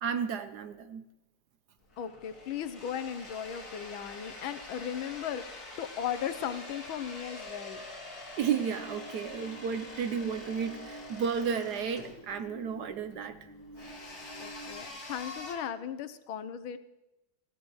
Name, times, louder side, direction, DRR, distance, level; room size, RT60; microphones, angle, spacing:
voice 1, 0.0-1.0 8.4-13.4, right 7 dB, 65° right, 9 dB, 1.1 m, -33 dB
sound 1, 1.8-15.5, left 2 dB, 45° left, 3.3 m, -46 dB
voice 2, 2.0-7.8 14.4-16.8, left 9 dB, 90° left, 12 dB, 1.6 m, -37 dB
sound 2, 8.7-14.8, right 2 dB, 10° left, 3.0 m, -50 dB
21.5 x 15.0 x 3.1 m, 0.94 s
omnidirectional pair, 2.2 m